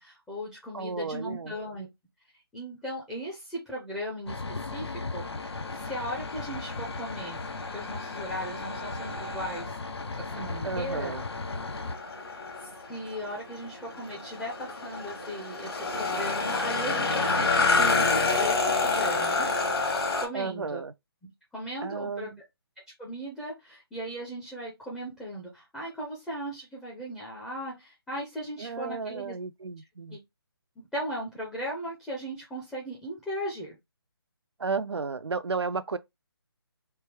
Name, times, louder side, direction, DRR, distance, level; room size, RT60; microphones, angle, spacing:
voice 1, 0.0-1.9 2.5-7.4 7.7-9.8 10.2-11.2 12.9-19.7 20.2-20.8 21.5-22.3 23.0-29.3 30.1-30.2 30.8-33.8, equal, 5° left, 0.4 m, -37 dB
voice 2, 0.7-1.6 10.6-11.2 20.3-20.9 21.8-22.4 28.6-30.2 34.6-36.0, right 4 dB, 85° right, 0.4 m, -33 dB
sound 1, 4.3-12.0, left 3 dB, 85° left, 0.5 m, -37 dB
sound 2, 5.2-20.3, left 3 dB, 65° left, 1.2 m, -30 dB
3.3 x 2.2 x 3.3 m
figure-of-eight pair, 150°, 13 cm